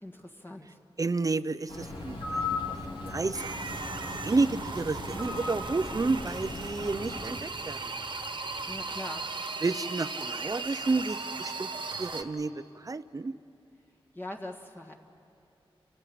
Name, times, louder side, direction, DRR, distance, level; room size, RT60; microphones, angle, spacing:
voice 1, 0.0-0.8 8.7-9.3 14.1-14.9, left 1 dB, 20° left, 2 dB, 1.6 m, -41 dB
voice 2, 1.0-2.8 3.1-3.5 4.2-7.8 9.6-11.7 12.0-13.3, right 3 dB, 35° right, 14 dB, 0.6 m, -31 dB
Bird, 1.7-7.5, left 3 dB, 65° left, 3.5 m, -37 dB
sound 1, 3.3-12.2, right 3 dB, 55° right, 1.4 m, -37 dB
29.0 x 15.0 x 8.6 m, 2.7 s
wide cardioid pair, 80°, 10 cm